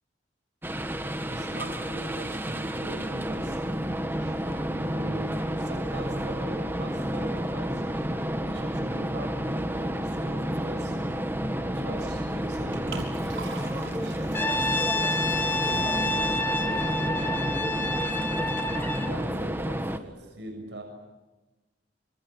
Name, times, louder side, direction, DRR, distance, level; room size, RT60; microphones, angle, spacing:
sound 1, 0.6-20.0, equal, 10° right, 1.6 m, -30 dB
voice 1, 1.3-8.1 8.4-16.2 16.6-18.2 18.9-20.8, right 1 dB, 65° right, 3 dB, 7.1 m, -41 dB
Liquid, 12.4-17.4, right 3 dB, 85° right, 6.0 m, -44 dB
Brass instrument, 14.3-19.2, left 2 dB, 10° left, 2.7 m, -29 dB
29.5 x 27.0 x 7.2 m, 1.1 s
head